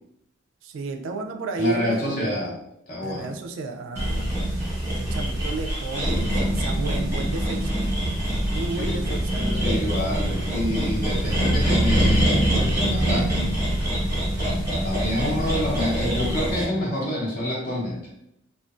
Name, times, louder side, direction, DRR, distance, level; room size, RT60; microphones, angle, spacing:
voice 1, 0.6-2.2 3.0-4.3 4.9-7.8 8.5-9.6, right 3 dB, 80° right, 6 dB, 0.3 m, -32 dB
voice 2, 1.6-2.5 2.9-3.3 8.7-9.1 9.5-13.4 14.8-18.0, left 1 dB, 45° left, -4 dB, 0.8 m, -27 dB
sound 1, 3.9-16.6, right 1 dB, 15° right, 0.8 m, -24 dB
sound 2, 6.3-11.6, right 1 dB, 30° left, 0.3 m, -38 dB
2.5 x 2.2 x 2.3 m, 0.78 s
head